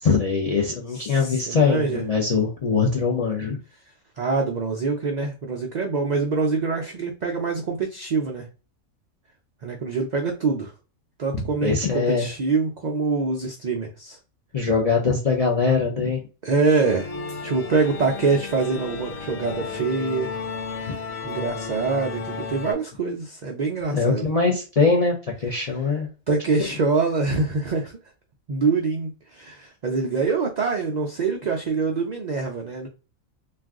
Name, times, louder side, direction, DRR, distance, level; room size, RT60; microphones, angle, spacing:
voice 1, 0.0-3.6 11.3-12.3 14.5-16.2 23.9-26.1 26.6-26.7, left 4 dB, 50° left, -1 dB, 0.4 m, -22 dB
voice 2, 1.1-2.0 4.2-8.5 9.6-10.7 11.2-14.2 16.4-17.1 17.4-20.3 20.7-24.3 25.6-25.7 26.3-28.0 28.5-32.9, right 4 dB, 70° right, 1 dB, 0.4 m, -25 dB
sound 1, 16.8-22.7, left 5 dB, 85° left, 1.0 m, -33 dB
2.4 x 2.3 x 3.5 m, 0.33 s
omnidirectional pair, 1.4 m